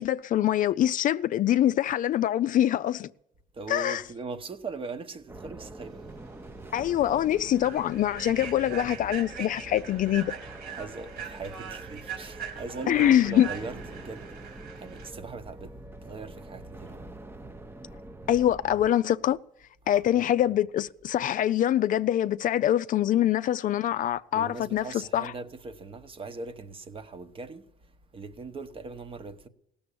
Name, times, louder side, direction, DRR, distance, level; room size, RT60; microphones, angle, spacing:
voice 1, 0.0-3.1 3.7-4.0 6.7-10.3 12.9-13.5 18.3-19.4 19.9-25.3, left 11 dB, 50° left, 0.4 m, -24 dB
voice 2, 3.5-6.1 10.7-14.3 14.8-15.7 16.0-17.1 19.8-20.2 24.3-29.5, right 4 dB, 30° right, 1.0 m, -40 dB
sound 1, 5.3-18.9, right 2 dB, 15° right, 0.7 m, -45 dB
Human voice / Train, 6.2-6.4 6.8-7.0 7.5-15.1, right 8 dB, 70° right, 2.9 m, -41 dB
17.0 x 7.0 x 8.5 m
cardioid pair, 110°, 17 cm